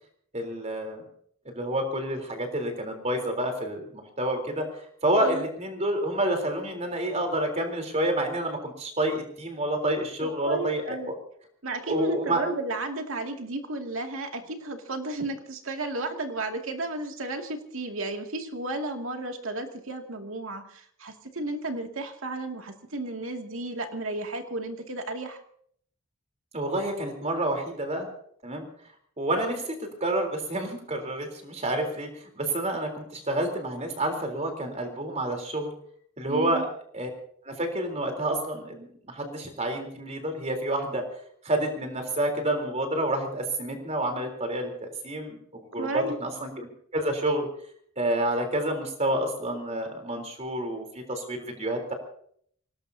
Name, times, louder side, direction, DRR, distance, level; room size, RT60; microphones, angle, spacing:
voice 1, 0.3-1.0 1.5-4.6 5.0-11.0 11.9-12.4 26.5-28.1 28.4-28.7 29.2-32.1 32.4-35.7 36.2-36.7 36.9-37.1 37.4-41.0 41.4-46.7 46.9-47.5 48.0-51.9, right 1 dB, 30° right, 4 dB, 3.7 m, -29 dB
voice 2, 10.2-11.1 11.6-25.4 36.3-36.6 45.8-46.2, right 2 dB, 65° right, 4 dB, 2.3 m, -33 dB
25.0 x 18.5 x 2.8 m, 0.62 s
head